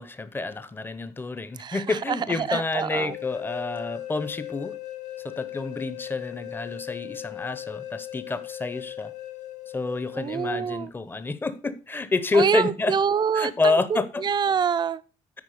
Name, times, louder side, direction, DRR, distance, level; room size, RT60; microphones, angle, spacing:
voice 1, 0.0-4.7 5.2-9.1 9.7-13.0 13.3-14.2, left 3 dB, 15° left, 0.8 m, -28 dB
voice 2, 1.6-3.2 10.1-10.9 12.3-13.8 14.2-15.0, right 7 dB, 35° right, 0.5 m, -26 dB
sound 1, 3.0-10.6, left 13 dB, 60° left, 2.0 m, -38 dB
9.6 x 4.6 x 6.6 m
cardioid pair, 130°, 13 cm